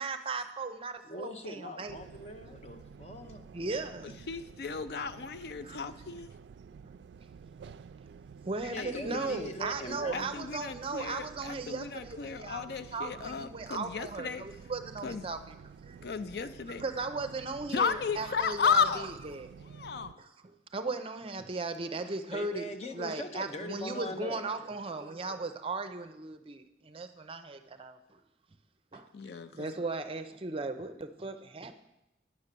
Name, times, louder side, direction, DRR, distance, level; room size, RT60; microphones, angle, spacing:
voice 1, 0.0-2.0 3.5-4.2 5.6-5.8 6.8-7.0 8.5-12.6 12.9-15.6 15.8-16.1 16.8-19.1 19.3-19.5 20.2-20.3 20.7-22.7 22.9-28.2 28.9-29.1 29.5-31.7, right 3 dB, 30° right, 9 dB, 0.5 m, -37 dB
voice 2, 1.0-3.4 8.6-10.3 21.8-24.4, left 1 dB, 35° left, 5 dB, 0.9 m, -41 dB
sound 1, 1.9-20.1, right 6 dB, 80° right, 0.3 m, -51 dB
voice 3, 4.0-6.3 8.8-9.4 10.1-14.4 15.0-15.3 16.0-16.8 17.7-19.1 19.6-20.2 29.1-29.7, left 6 dB, 65° left, 13 dB, 0.4 m, -34 dB
10.0 x 7.2 x 6.7 m, 0.93 s
head